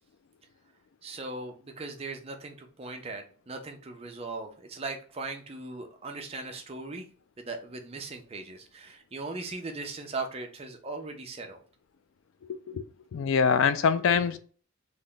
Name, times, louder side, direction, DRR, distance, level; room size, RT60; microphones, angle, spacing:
voice 1, 1.0-7.1 7.4-11.6, right 3 dB, 25° right, 0.5 m, -39 dB
voice 2, 12.5-12.8 13.1-14.4, left 6 dB, 65° left, 0.3 m, -24 dB
3.4 x 2.1 x 3.8 m
head